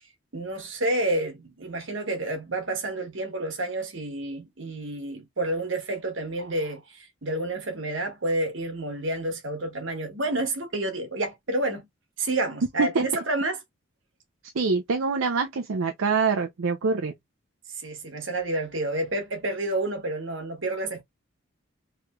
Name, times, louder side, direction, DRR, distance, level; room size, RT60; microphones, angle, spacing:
voice 1, 0.3-11.9 12.2-13.6 17.8-21.0, right 1 dB, 70° right, 1.2 m, -29 dB
voice 2, 14.5-17.1, right 5 dB, 90° right, 0.5 m, -25 dB
3.3 x 3.0 x 2.3 m
head